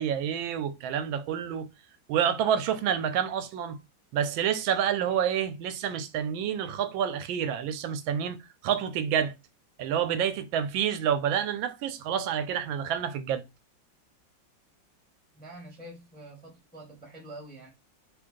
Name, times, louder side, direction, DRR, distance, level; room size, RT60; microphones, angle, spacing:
voice 1, 0.0-1.7 2.1-3.8 4.1-8.4 8.6-9.3 9.8-13.4, right 8 dB, 85° right, 1.3 m, -28 dB
voice 2, 15.3-17.7, right 1 dB, 10° left, 0.6 m, -46 dB
3.2 x 2.6 x 3.7 m
omnidirectional pair, 2.1 m